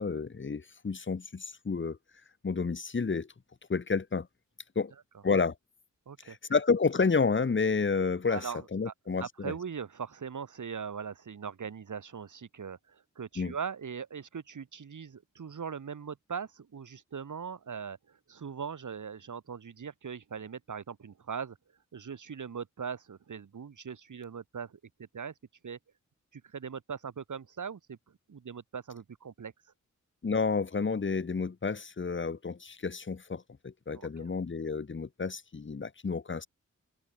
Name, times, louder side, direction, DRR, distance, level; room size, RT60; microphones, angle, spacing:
voice 1, 0.0-2.0 2.4-3.3 3.7-4.3 4.7-4.9 5.2-5.5 6.2-9.5 13.4-13.5 30.2-36.5, left 4 dB, 40° left, 1.6 m, -30 dB
voice 2, 6.1-6.4 8.3-21.6 21.9-25.3 25.6-25.8 26.3-28.0 28.3-29.5 33.9-34.1, right 6 dB, 85° right, 4.2 m, -40 dB
wide cardioid pair, 105°, 30 cm